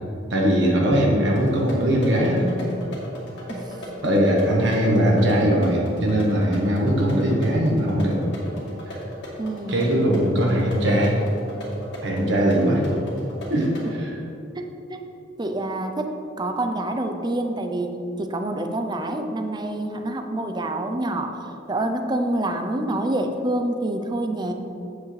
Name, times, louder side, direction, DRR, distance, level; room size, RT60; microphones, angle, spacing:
voice 1, 0.3-2.4 4.0-8.2 8.9-9.0 9.7-11.2 12.0-12.8 13.5-13.7 14.0-14.1, equal, 65° right, -2 dB, 1.2 m, -20 dB
sound 1, 1.4-13.9, equal, 60° left, 2.0 m, -37 dB
voice 2, 4.0-4.6 9.4-10.0 14.5-15.0 15.4-24.5, right 1 dB, 20° right, 5 dB, 0.5 m, -27 dB
8.2 x 8.1 x 3.3 m, 2.7 s
head